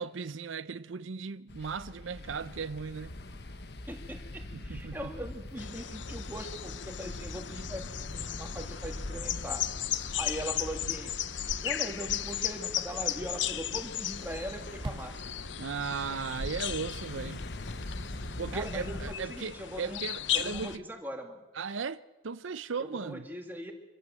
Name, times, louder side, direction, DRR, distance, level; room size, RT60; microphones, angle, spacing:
voice 1, 0.0-3.1 4.5-5.0 15.6-17.4 18.4-20.8 21.6-23.2, right 5 dB, 80° right, 0.6 m, -37 dB
sound 1, 1.5-19.2, left 1 dB, 55° left, 1.2 m, -43 dB
voice 2, 3.9-7.8 8.1-9.7 10.1-11.1 11.6-15.2 18.5-20.0 20.3-21.4 22.8-23.7, right 1 dB, 10° right, 2.3 m, -40 dB
sound 2, 5.6-20.8, left 11 dB, 70° left, 0.8 m, -36 dB
sound 3, 10.2-10.3 10.7-12.2 14.7-15.2 16.0-17.2, right 1 dB, 25° right, 0.7 m, -42 dB
25.0 x 15.5 x 7.7 m
head